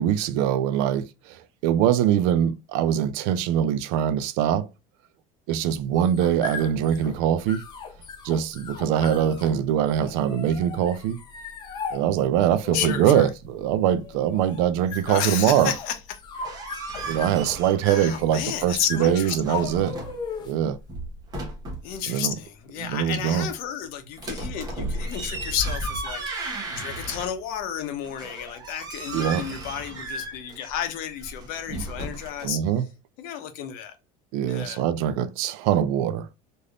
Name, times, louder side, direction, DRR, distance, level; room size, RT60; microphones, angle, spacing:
voice 1, 0.0-4.7 5.5-7.6 8.2-11.2 11.9-15.7 17.0-19.9 20.4-20.8 22.1-22.3 22.8-23.5 29.1-29.4 32.4-32.9 34.3-36.3, right 10 dB, 80° right, 0.5 m, -23 dB
sound 1, 5.8-20.7, left 6 dB, 25° left, 0.5 m, -38 dB
voice 2, 12.7-13.3 15.1-16.0 17.9-19.6 21.8-32.6 33.2-33.9 34.5-34.8, left 9 dB, 60° left, 0.7 m, -32 dB
sound 2, 16.2-18.4 18.7-20.2 20.7-21.9 24.2-27.6 28.0-32.5, right 1 dB, 25° right, 0.9 m, -35 dB
3.3 x 2.6 x 2.3 m
cardioid pair, 175°, 17 cm